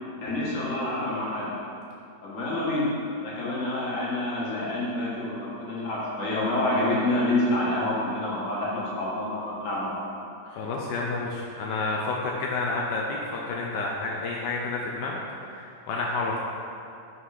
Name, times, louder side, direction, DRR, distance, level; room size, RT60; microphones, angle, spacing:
voice 1, 0.2-1.5 2.2-2.9 3.2-10.0, left 1 dB, 50° left, -7 dB, 1.9 m, -27 dB
voice 2, 10.4-15.2 15.5-16.4, left 3 dB, 85° left, -2 dB, 1.3 m, -30 dB
5.7 x 5.5 x 4.9 m, 2.7 s
omnidirectional pair, 1.8 m